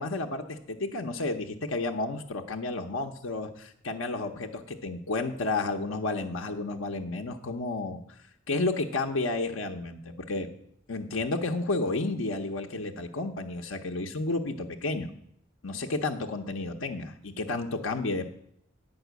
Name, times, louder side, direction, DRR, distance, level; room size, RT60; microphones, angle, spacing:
voice 1, 0.0-8.0 8.5-10.5 10.9-15.1 15.6-18.2, left 2 dB, 90° left, 2 dB, 0.8 m, -31 dB
9.0 x 5.5 x 8.1 m, 0.70 s
head